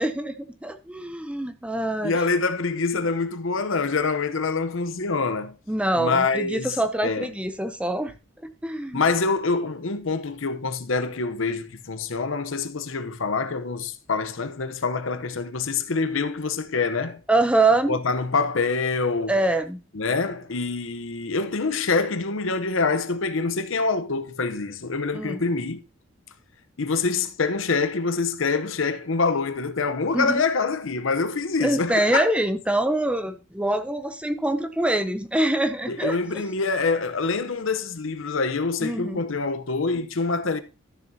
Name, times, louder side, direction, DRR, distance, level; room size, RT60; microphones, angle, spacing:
voice 1, 0.0-2.1 5.7-8.1 8.6-9.0 17.3-17.9 19.3-19.8 25.1-25.4 30.1-30.4 31.6-36.2 38.8-39.2, right 1 dB, 5° right, 0.5 m, -24 dB
voice 2, 2.0-5.5 6.0-6.8 7.0-7.3 8.9-17.2 17.9-19.4 19.9-25.8 26.8-32.3 35.9-40.6, left 4 dB, 70° left, 0.8 m, -25 dB
12.5 x 7.1 x 2.8 m
head